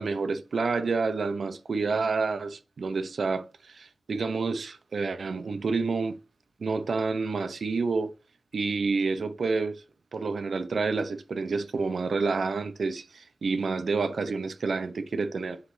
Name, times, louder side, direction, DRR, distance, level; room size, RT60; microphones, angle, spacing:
voice 1, 0.0-6.2 6.6-8.1 8.5-9.8 10.1-15.6, right 4 dB, 75° right, 0.7 m, -29 dB
7.9 x 5.0 x 3.2 m
wide cardioid pair, 95°, 0 cm